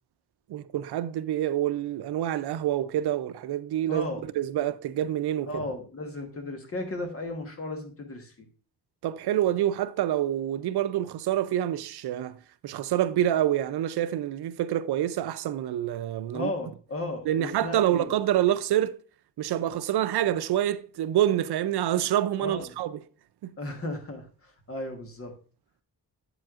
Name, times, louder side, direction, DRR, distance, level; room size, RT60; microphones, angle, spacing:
voice 1, 0.5-5.5 9.0-16.5 17.3-19.0 19.4-22.9 23.4-23.6, right 12 dB, 90° right, 0.5 m, -27 dB
voice 2, 3.9-4.2 5.4-8.5 16.3-18.1 22.4-22.7 23.6-25.3, left 2 dB, 35° left, 1.2 m, -35 dB
8.3 x 7.6 x 2.4 m
wide cardioid pair, 165°, 38 cm